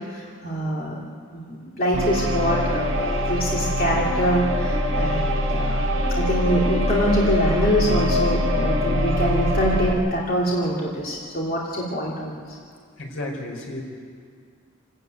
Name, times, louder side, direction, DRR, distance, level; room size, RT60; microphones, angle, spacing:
voice 1, 0.1-1.0 1.3-5.9 6.2-12.4, equal, 45° left, -4 dB, 2.8 m, -25 dB
sound 1, 1.9-9.9, equal, 65° right, 4.0 m, -23 dB
voice 2, 13.0-13.8, left 1 dB, 80° left, 1 dB, 4.7 m, -32 dB
27.5 x 13.5 x 8.9 m, 2.1 s
head